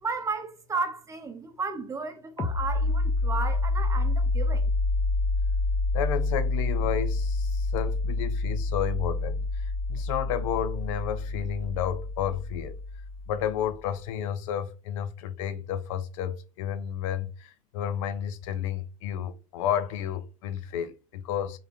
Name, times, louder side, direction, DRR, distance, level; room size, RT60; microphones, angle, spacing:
voice 1, 0.0-4.7, right 4 dB, 15° right, 0.9 m, -33 dB
sound 1, 2.4-13.7, left 2 dB, 20° left, 0.8 m, -28 dB
voice 2, 5.9-9.4 9.9-12.8 13.3-21.6, left 9 dB, 65° left, 0.5 m, -31 dB
3.7 x 3.3 x 3.0 m
hypercardioid pair, 90°, 18 cm